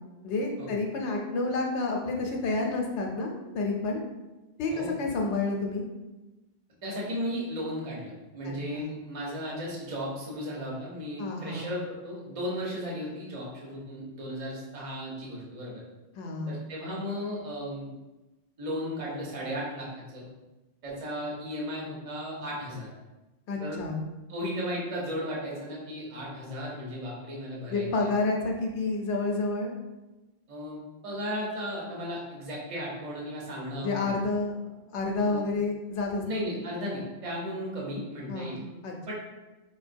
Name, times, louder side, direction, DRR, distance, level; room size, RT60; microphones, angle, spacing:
voice 1, 0.2-4.0 4.6-5.8 8.4-9.0 11.2-11.7 16.1-16.6 23.5-24.0 27.7-29.7 33.8-34.6 34.9-36.5 38.3-38.9, left 3 dB, 80° left, 1 dB, 0.9 m, -30 dB
voice 2, 6.8-15.8 16.5-17.9 18.6-20.3 20.8-22.9 23.6-23.8 24.3-28.1 30.5-34.2 35.2-35.4 36.2-38.6 39.1-39.2, equal, 35° right, -4 dB, 0.8 m, -35 dB
4.4 x 2.2 x 2.5 m, 1.1 s
omnidirectional pair, 1.2 m